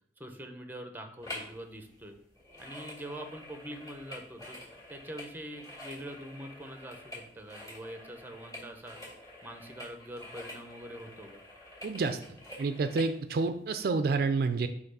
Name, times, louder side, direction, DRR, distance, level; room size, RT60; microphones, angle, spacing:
voice 1, 0.2-2.2 2.6-4.6 4.9-9.0 9.4-11.4, right 1 dB, 10° right, 5 dB, 0.7 m, -44 dB
sound 1, 1.2-1.6 1.8-13.1 13.7-13.8, left 1 dB, 20° left, 2.1 m, -47 dB
voice 2, 11.8-12.2 12.6-14.7, right 4 dB, 60° right, 9 dB, 0.4 m, -29 dB
5.7 x 3.2 x 5.4 m, 0.73 s
head